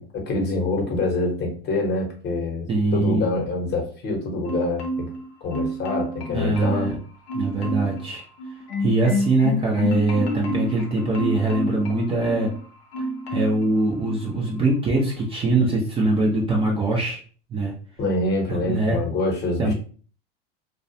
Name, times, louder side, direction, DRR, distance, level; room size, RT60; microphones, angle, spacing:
voice 1, 0.0-2.7 2.9-5.1 5.4-6.9 18.0-19.7, left 2 dB, 35° left, 1 dB, 0.8 m, -26 dB
voice 2, 2.7-3.2 6.3-7.0 7.3-8.3 8.8-12.5 13.3-17.2 17.5-17.7 18.5-19.0 19.6-19.7, right 2 dB, 20° right, -2 dB, 0.4 m, -22 dB
Marimba xylophone, 4.5-5.2 5.5-6.9 7.3-8.0 8.4-12.6 12.9-13.6 14.0-14.2, left 1 dB, 85° left, 0.7 m, -29 dB
2.3 x 2.2 x 2.6 m, 0.42 s
hypercardioid pair, 115°, 30 cm